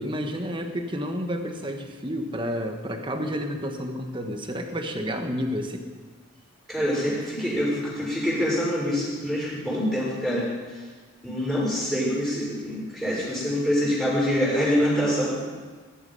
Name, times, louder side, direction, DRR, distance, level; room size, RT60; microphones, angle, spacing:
voice 1, 0.0-5.9, equal, 25° right, 4 dB, 1.4 m, -30 dB
voice 2, 6.7-10.8 11.2-15.3, equal, ahead, -7 dB, 6.0 m, -25 dB
20.0 x 12.0 x 5.5 m, 1.4 s
head